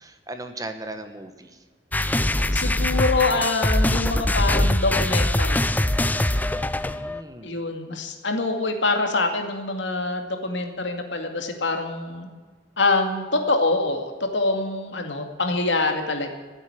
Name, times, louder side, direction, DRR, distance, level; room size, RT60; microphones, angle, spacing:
voice 1, 0.0-1.6 6.8-7.5, right 2 dB, 20° right, 7 dB, 1.2 m, -37 dB
sound 1, 1.9-7.2, left 1 dB, 10° left, 0.4 m, -22 dB
voice 2, 2.5-5.6 7.4-12.3 12.8-16.3, left 3 dB, 80° left, 5 dB, 2.2 m, -25 dB
15.0 x 8.2 x 9.8 m, 1.4 s
head